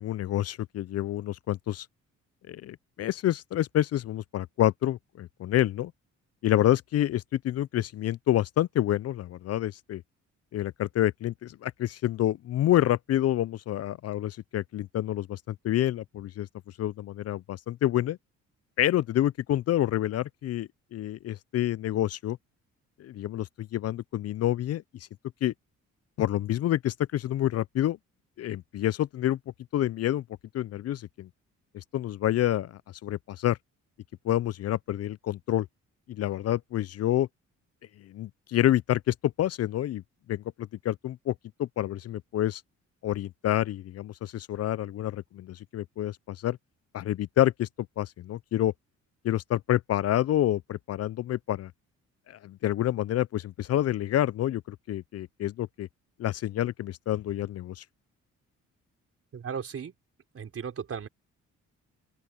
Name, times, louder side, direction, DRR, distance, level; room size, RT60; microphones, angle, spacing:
voice 1, 0.0-1.9 2.5-5.9 6.4-10.0 10.5-16.5 16.8-18.2 18.8-22.4 23.0-24.8 25.4-25.5 26.2-28.0 28.4-29.4 29.7-30.2 30.5-31.3 31.7-33.6 34.2-35.7 36.1-37.3 38.0-40.0 40.3-41.3 41.6-42.6 43.0-46.6 46.9-47.7 48.0-48.7 49.2-51.7 52.3-55.9 56.2-57.8, left 13 dB, 55° left, 0.5 m, -28 dB
voice 2, 59.3-59.9 60.3-61.1, right 7 dB, 50° right, 4.5 m, -36 dB
open air
cardioid pair, 90°, 30 cm